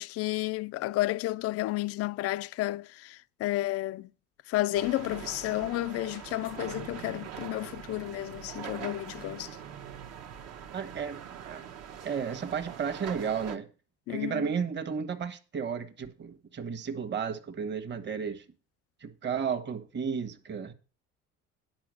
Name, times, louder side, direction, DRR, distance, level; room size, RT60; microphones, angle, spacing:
voice 1, 0.0-4.1 4.5-9.5 14.1-14.5, left 17 dB, 50° left, 0.4 m, -31 dB
sound 1, 4.7-13.6, right 8 dB, 55° right, 1.1 m, -43 dB
voice 2, 10.7-11.6 12.0-13.7 14.1-18.4 19.0-20.7, right 6 dB, 35° right, 1.3 m, -33 dB
10.5 x 4.9 x 6.3 m
cardioid pair, 115°, 31 cm